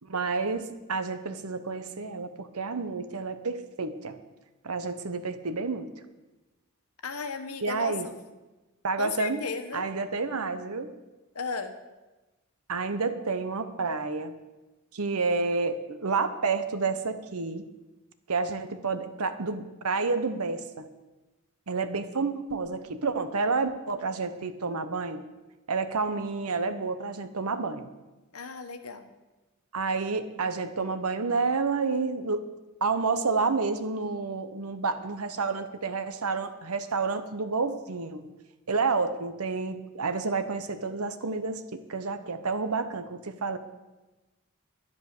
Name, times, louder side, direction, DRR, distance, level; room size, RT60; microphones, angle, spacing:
voice 1, 0.0-4.2 4.6-5.9 7.6-8.1 8.8-9.4 9.7-10.9 12.7-14.3 14.9-17.6 18.3-20.9 21.7-25.2 25.7-27.9 29.7-32.5 32.8-38.3 38.7-43.6, right 4 dB, 90° right, 10 dB, 1.0 m, -29 dB
voice 2, 7.0-8.1 9.0-9.8 11.3-11.7 28.3-29.1, left 4 dB, 85° left, 8 dB, 1.3 m, -35 dB
11.0 x 11.0 x 6.8 m, 1.1 s
head